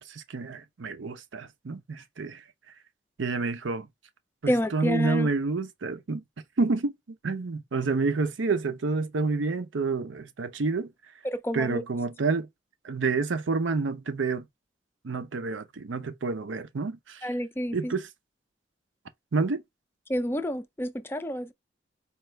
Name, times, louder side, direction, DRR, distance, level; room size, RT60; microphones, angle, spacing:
voice 1, 0.0-2.4 3.2-3.9 4.4-6.2 6.6-6.9 7.2-10.9 11.5-12.5 12.8-14.5 15.0-17.3 17.7-18.1 19.3-19.6, right 4 dB, 90° right, 0.6 m, -29 dB
voice 2, 4.5-5.3 11.2-11.8 17.2-17.9 20.1-21.5, equal, 10° left, 0.3 m, -29 dB
4.4 x 2.4 x 3.1 m
head